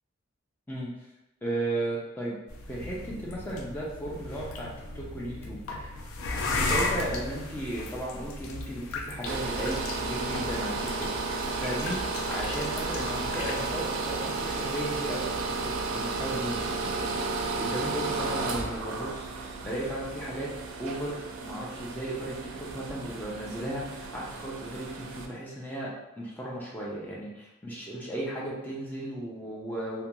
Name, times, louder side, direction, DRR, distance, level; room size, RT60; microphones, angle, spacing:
voice 1, 0.7-1.1 1.4-2.4 2.7-6.0 6.4-12.0 12.3-15.3 15.6-20.5 20.8-30.0, right 1 dB, 10° left, -5 dB, 0.4 m, -35 dB
sound 1, 2.5-13.6, left 3 dB, 80° left, 0.4 m, -35 dB
sound 2, 9.3-25.3, right 3 dB, 80° right, 0.4 m, -33 dB
2.4 x 2.2 x 2.9 m, 0.93 s
head